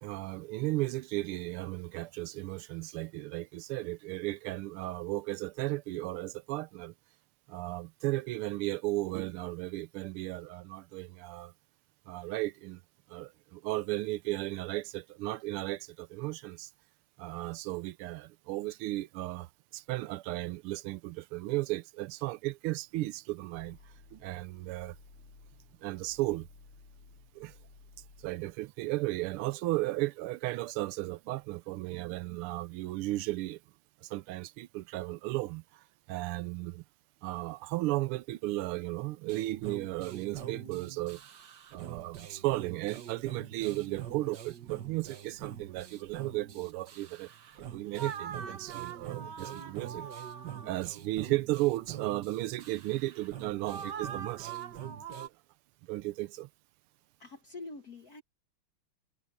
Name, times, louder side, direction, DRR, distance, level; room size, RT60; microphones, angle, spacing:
voice 1, 0.0-6.9 7.5-11.5 12.1-12.8 13.1-16.7 17.2-19.5 19.7-23.8 24.1-25.0 25.8-26.5 27.3-27.6 28.2-33.6 34.0-36.8 37.2-41.2 41.7-47.3 47.6-50.0 50.6-54.5 55.9-56.5, right 18 dB, 85° right, 1.5 m, -35 dB
sound 1, 23.5-29.5, left 4 dB, 75° left, 4.1 m, -57 dB
sound 2, 39.3-55.3, right 9 dB, 55° right, 1.7 m, -43 dB
voice 2, 57.2-58.2, left 3 dB, 50° left, 1.5 m, -45 dB
omnidirectional pair, 2.4 m